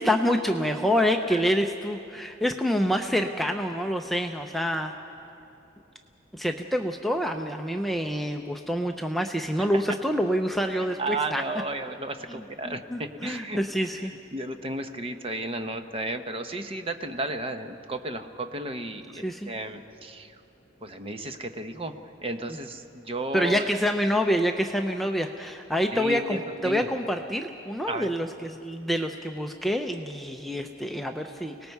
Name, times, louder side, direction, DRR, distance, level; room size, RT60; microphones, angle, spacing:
voice 1, 0.0-4.9 6.3-11.4 12.6-14.1 19.2-19.5 23.3-31.7, equal, ahead, 3 dB, 0.6 m, -27 dB
voice 2, 10.7-13.6 13.9-20.4 20.8-21.9 22.2-23.7 25.9-26.9 27.9-28.1, right 2 dB, 30° right, 7 dB, 0.9 m, -34 dB
30.0 x 19.0 x 4.7 m, 2.7 s
head